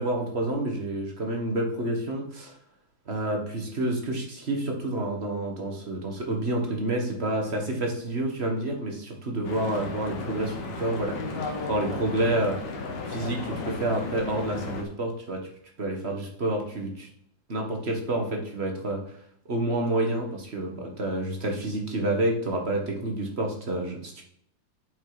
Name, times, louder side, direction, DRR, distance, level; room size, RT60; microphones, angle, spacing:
voice 1, 0.0-2.5 3.1-12.6 13.1-15.4 15.8-17.1 17.5-19.0 19.5-24.2, right 1 dB, 35° right, 1 dB, 1.7 m, -29 dB
Stream / Boat Water vehicle, 9.4-14.8, left 3 dB, 70° left, 1.9 m, -34 dB
7.6 x 5.4 x 5.0 m, 0.68 s
omnidirectional pair, 2.0 m